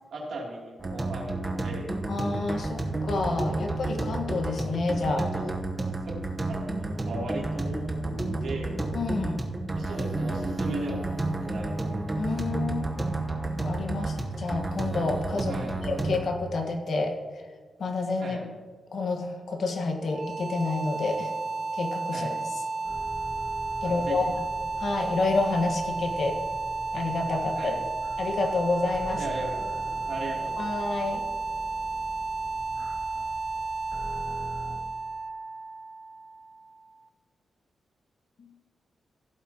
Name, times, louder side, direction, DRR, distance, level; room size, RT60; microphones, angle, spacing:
voice 1, 0.1-2.0 5.1-6.2 6.4-8.8 9.7-11.9 15.5-15.8 18.2-18.5 22.1-22.4 23.8-24.2 27.6-27.8 29.2-29.7 30.0-30.8, right 1 dB, 75° right, -3 dB, 2.9 m, -37 dB
sound 1, 0.8-16.2, right 2 dB, 20° right, 1.0 m, -31 dB
voice 2, 2.1-5.2 8.9-9.4 12.2-12.9 13.6-15.6 15.8-17.2 17.8-18.4 18.9-21.3 21.7-22.3 23.8-24.4 24.8-26.4 26.9-27.7 28.2-29.2 30.6-31.2 38.4-38.5, left 3 dB, 60° left, 4 dB, 1.4 m, -29 dB
sound 2, 20.0-37.0, right 3 dB, 50° right, 0.5 m, -33 dB
sound 3, 22.8-34.8, equal, 15° left, 1.6 m, -43 dB
15.5 x 8.2 x 2.9 m, 1.5 s
wide cardioid pair, 140°, 0 cm